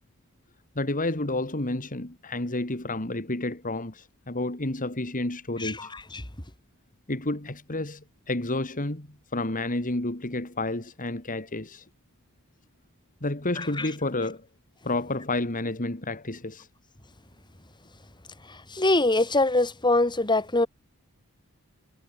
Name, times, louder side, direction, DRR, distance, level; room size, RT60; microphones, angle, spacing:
voice 1, 0.8-5.9 7.1-11.9 13.2-14.5 14.8-16.7, left 2 dB, 40° left, 2.6 m, -30 dB
voice 2, 5.6-6.2 13.8-13.9 18.5-20.7, left 2 dB, 20° left, 3.4 m, -24 dB
head